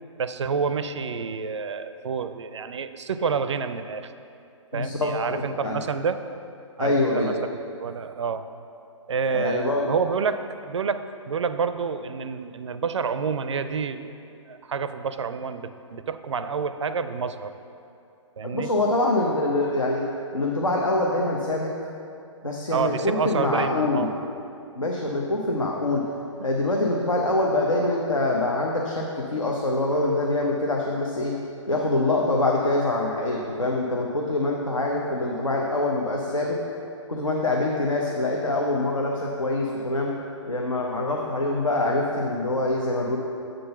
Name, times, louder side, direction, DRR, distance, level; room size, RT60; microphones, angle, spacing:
voice 1, 0.2-4.1 4.7-6.2 6.8-7.5 7.8-8.4 9.1-14.1 14.5-17.5 18.4-18.7 22.7-24.1, right 5 dB, 65° right, 11 dB, 0.4 m, -28 dB
voice 2, 4.7-5.8 6.8-7.3 9.3-9.9 18.4-20.1 20.3-21.7 22.4-24.1 24.7-26.1 26.4-31.4 31.7-36.6 37.1-40.1 40.5-43.2, left 2 dB, 85° left, -1 dB, 0.7 m, -25 dB
7.8 x 3.9 x 5.7 m, 2.6 s
figure-of-eight pair, 125°, 16 cm